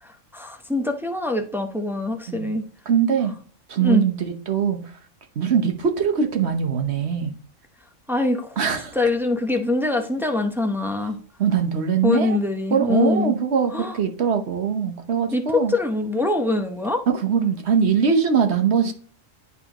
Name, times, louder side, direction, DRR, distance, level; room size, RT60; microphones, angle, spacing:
voice 1, 0.0-2.6 3.8-4.1 8.1-8.6 8.9-11.2 12.0-13.3 13.7-14.0 15.3-17.0, left 2 dB, ahead, 0.6 m, -23 dB
voice 2, 2.9-3.3 3.7-4.8 5.4-7.3 8.6-9.0 11.4-12.4 12.7-15.7 17.1-18.9, right 7 dB, 60° right, 1.2 m, -22 dB
11.0 x 4.1 x 2.9 m
omnidirectional pair, 1.3 m